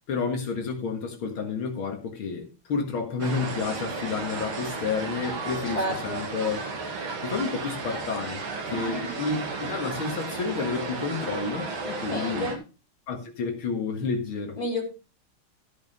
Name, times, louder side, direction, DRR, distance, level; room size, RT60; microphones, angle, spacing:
voice 1, 0.1-6.6 7.2-12.5 13.1-14.6, left 5 dB, 80° left, 2.6 m, -30 dB
sound 1, 3.2-12.6, right 4 dB, 90° right, 2.8 m, -34 dB
voice 2, 5.7-6.3 8.7-9.1 12.1-12.6 14.6-14.8, left 1 dB, 20° left, 3.6 m, -30 dB
14.5 x 5.5 x 5.4 m
omnidirectional pair, 2.2 m